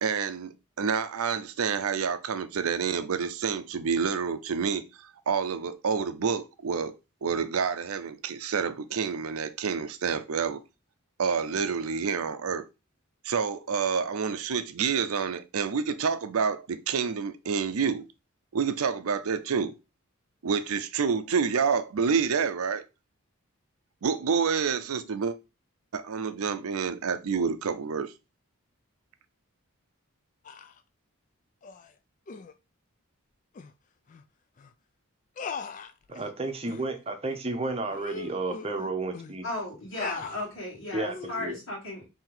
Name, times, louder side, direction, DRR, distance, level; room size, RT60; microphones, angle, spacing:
voice 1, 0.0-6.9 7.2-10.6 11.2-12.7 13.2-18.1 18.5-19.7 20.4-22.8 24.0-25.4 25.9-28.1, right 6 dB, 80° right, 0.5 m, -28 dB
sound 1, 30.4-30.8 31.6-31.9 32.3-32.5 33.5-33.7 34.1-34.2 34.6-34.7 35.4-36.3 36.7-36.9 37.3-37.4 37.9-39.3 39.9-40.5 41.1-41.5, left 5 dB, 35° left, 0.3 m, -40 dB
voice 2, 36.1-39.5 40.9-41.6, right 2 dB, 25° right, 0.7 m, -32 dB
voice 3, 39.4-42.1, left 1 dB, 70° left, 1.5 m, -35 dB
4.4 x 2.9 x 3.8 m
head